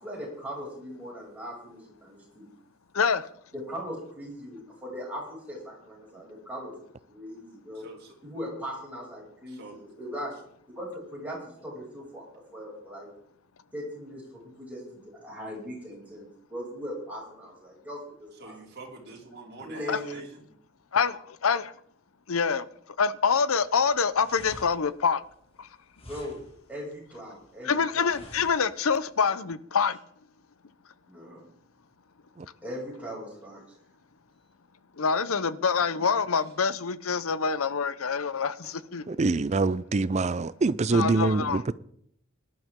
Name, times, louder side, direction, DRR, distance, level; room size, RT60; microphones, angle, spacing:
voice 1, 0.0-2.5 3.5-6.7 7.1-7.9 8.2-10.3 10.7-12.2 12.5-13.1 13.7-18.5 19.6-20.2 26.1-26.4 26.7-28.2 31.1-31.4 32.6-33.6 39.1-39.4, equal, 5° right, 6.7 m, -39 dB
voice 2, 2.9-3.3 19.9-20.0 20.9-21.7 22.3-22.7 23.0-25.2 25.6-25.7 27.6-30.0 35.0-39.0 40.9-41.6, left 5 dB, 80° left, 0.7 m, -26 dB
voice 3, 7.7-8.1 9.5-9.8 18.4-20.4 38.6-38.8, right 3 dB, 50° right, 3.2 m, -46 dB
sound 1, 23.6-29.1, left 1 dB, 25° left, 2.2 m, -50 dB
voice 4, 39.1-41.7, right 3 dB, 30° right, 0.4 m, -25 dB
19.0 x 11.5 x 3.7 m
head